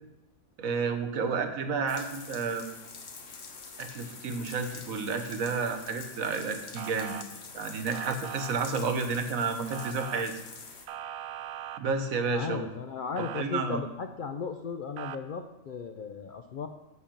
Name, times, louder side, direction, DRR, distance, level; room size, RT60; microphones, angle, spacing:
voice 1, 0.6-2.6 3.8-7.2 7.5-10.4 11.8-12.7 13.2-13.8, right 4 dB, 70° right, 7 dB, 1.3 m, -31 dB
sound 1, 1.9-10.9, left 4 dB, 50° left, 1.3 m, -46 dB
Motor vehicle (road) / Siren, 6.8-7.2 7.9-8.5 9.7-10.2 10.9-11.8 13.2-13.4 15.0-15.2, right 10 dB, 90° right, 1.1 m, -39 dB
voice 2, 12.1-16.7, left 5 dB, 65° left, 6 dB, 0.5 m, -36 dB
10.5 x 4.3 x 7.3 m, 0.99 s
omnidirectional pair, 1.5 m